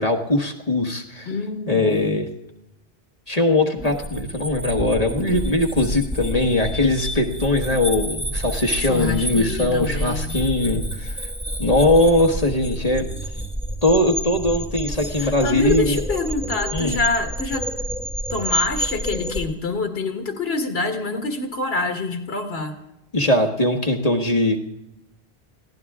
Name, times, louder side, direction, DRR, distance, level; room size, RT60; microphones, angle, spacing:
voice 1, 0.0-1.3 1.7-2.2 3.3-11.1 11.6-13.1 13.8-16.0 16.7-17.0 23.1-24.6, left 1 dB, 35° left, 3 dB, 1.5 m, -20 dB
voice 2, 1.3-2.2 8.8-10.4 15.2-17.7 18.3-22.8, left 3 dB, 75° left, 5 dB, 1.9 m, -26 dB
sound 1, 3.8-19.4, right 1 dB, 5° right, 1.2 m, -29 dB
22.0 x 15.5 x 3.6 m, 0.87 s
omnidirectional pair, 1.1 m